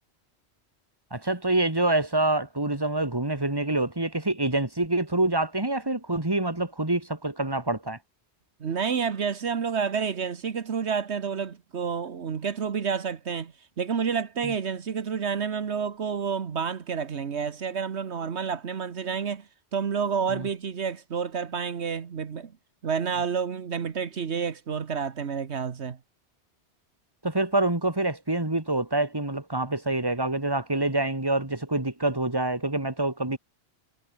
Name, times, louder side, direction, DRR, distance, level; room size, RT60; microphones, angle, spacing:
voice 1, 1.1-8.0 14.4-14.5 20.3-20.5 27.2-33.4, right 2 dB, 20° right, 2.6 m, -26 dB
voice 2, 8.6-22.5 22.8-26.0, right 6 dB, 75° right, 1.5 m, -29 dB
omnidirectional pair, 1.1 m